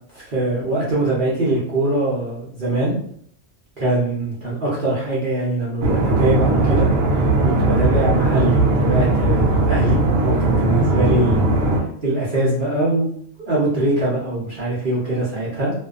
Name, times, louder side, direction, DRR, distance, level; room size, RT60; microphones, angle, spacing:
voice 1, 0.1-2.9 3.8-6.9 7.4-11.6 12.0-13.2 13.5-15.7, right 2 dB, 50° right, -8 dB, 0.7 m, -22 dB
sound 1, 5.8-11.8, right 2 dB, 70° right, 0.9 m, -18 dB
2.6 x 2.2 x 2.4 m, 0.64 s
omnidirectional pair, 1.5 m